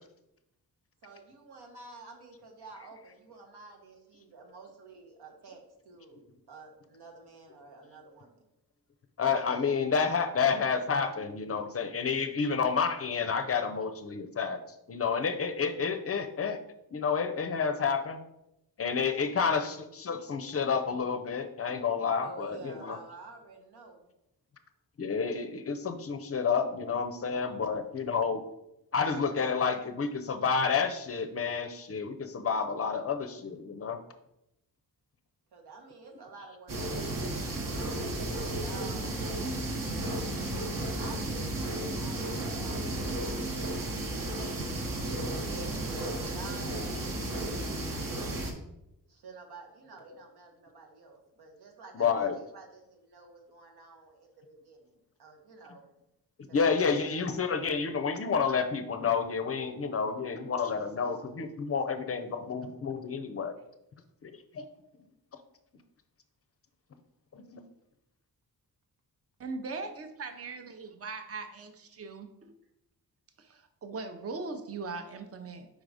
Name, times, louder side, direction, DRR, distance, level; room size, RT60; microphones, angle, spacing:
voice 1, 1.0-8.3 19.2-19.7 22.2-24.0 35.5-40.5 41.0-44.1 44.6-48.4 49.1-54.3 54.6-55.9 56.5-56.6, right 3 dB, 85° right, 2 dB, 1.3 m, -50 dB
voice 2, 9.2-14.6 14.9-16.6 16.9-18.2 18.8-23.0 25.0-28.4 28.9-34.0 40.4-40.5 50.1-50.2 51.9-52.4 56.5-63.5 64.2-64.6 67.3-67.6, left 5 dB, 40° left, 8 dB, 0.5 m, -30 dB
sound 1, 36.7-48.5, right 1 dB, 60° right, 1.1 m, -33 dB
voice 3, 69.4-72.5 73.4-75.7, right 4 dB, 40° right, 7 dB, 0.7 m, -40 dB
5.1 x 3.9 x 4.8 m, 0.84 s
wide cardioid pair, 155°, 38 cm